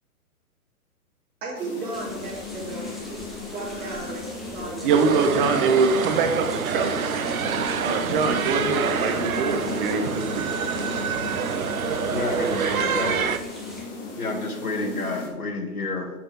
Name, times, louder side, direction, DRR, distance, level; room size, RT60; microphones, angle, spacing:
voice 1, 1.4-5.2 5.5-5.7, right 3 dB, 20° right, -5 dB, 2.9 m, -35 dB
sound 1, 1.6-15.3, left 4 dB, 25° left, 2.1 m, -35 dB
sound 2, 1.9-13.8, equal, ahead, 1.1 m, -44 dB
voice 2, 4.8-7.1 7.8-10.5, right 4 dB, 35° right, 6 dB, 1.3 m, -23 dB
sound 3, 4.9-13.4, right 7 dB, 70° right, 0.8 m, -27 dB
voice 3, 12.1-13.3 14.2-16.1, left 2 dB, 80° left, 3 dB, 2.1 m, -29 dB
7.3 x 7.0 x 5.1 m, 1.0 s
figure-of-eight pair, 125°, 44 cm